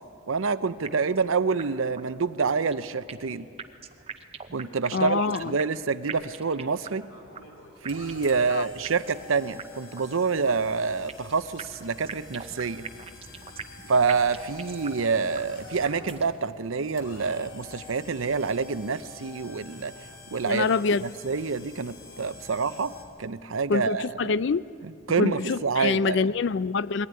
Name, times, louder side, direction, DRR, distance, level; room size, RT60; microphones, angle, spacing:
voice 1, 0.3-3.5 4.5-7.1 7.8-12.8 13.9-19.9 20.3-20.7 21.0-22.9 23.2-24.3 25.1-26.3, right 5 dB, 80° right, 14 dB, 0.7 m, -27 dB
sound 1, 0.8-1.3 1.6-1.7 2.0-2.1 2.5-3.3 3.6-5.8 6.1-7.1 7.3-7.4 7.8-8.4 8.8-9.3 9.6-9.7 10.0-10.1 10.4-11.3 11.6-13.8 14.1-15.1 15.3-15.4 15.8-16.4, right 6 dB, 30° right, 0.7 m, -39 dB
voice 2, 4.9-5.5 8.5-8.7 20.5-21.1 23.7-24.6 25.2-27.1, left 4 dB, 60° left, 18 dB, 0.4 m, -25 dB
sound 2, 7.1-23.0, left 3 dB, 90° left, 3.0 m, -47 dB
21.5 x 15.5 x 9.4 m, 2.5 s
head